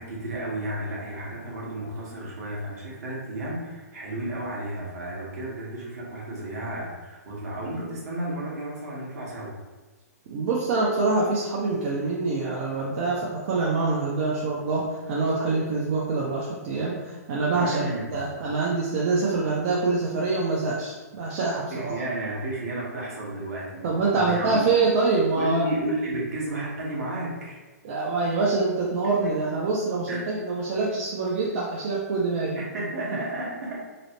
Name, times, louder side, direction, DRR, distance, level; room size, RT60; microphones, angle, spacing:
voice 1, 0.0-9.5 17.5-18.3 21.7-24.7 25.3-27.6 29.0-29.4 30.1-30.3 32.5-33.8, right 1 dB, 65° right, -4 dB, 1.0 m, -32 dB
voice 2, 10.3-17.9 18.1-22.0 23.8-25.7 27.8-32.6 33.1-33.2, right 3 dB, 45° right, -5 dB, 0.5 m, -25 dB
2.9 x 2.0 x 2.8 m, 1.3 s
hypercardioid pair, 130°, 9 cm